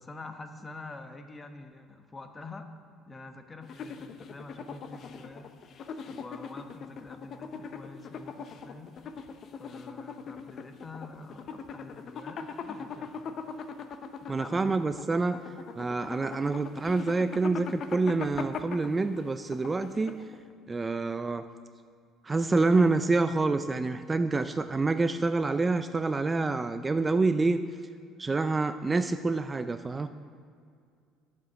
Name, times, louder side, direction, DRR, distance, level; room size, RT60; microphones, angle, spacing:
voice 1, 0.0-2.7 3.1-5.5 6.1-9.1 9.5-13.4 14.2-14.8, left 3 dB, 25° left, 7 dB, 1.0 m, -46 dB
sound 1, 3.6-20.5, left 5 dB, 50° left, 0.7 m, -41 dB
voice 2, 14.3-15.4 15.8-20.2 20.7-21.4 22.2-27.6 28.2-30.1, right 3 dB, 20° right, 10 dB, 0.4 m, -27 dB
9.4 x 7.6 x 6.3 m, 2.3 s
supercardioid pair, 90°, 0 cm